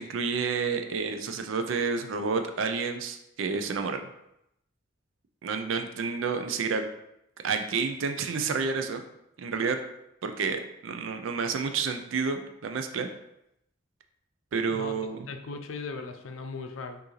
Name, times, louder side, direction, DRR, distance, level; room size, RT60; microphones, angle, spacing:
voice 1, 0.0-4.1 5.4-6.8 7.4-9.0 9.4-9.8 10.2-13.1 14.5-15.3, right 5 dB, 80° right, 7 dB, 0.4 m, -30 dB
voice 2, 15.3-17.0, left 4 dB, 80° left, 6 dB, 0.4 m, -38 dB
4.6 x 2.6 x 3.1 m, 0.80 s
head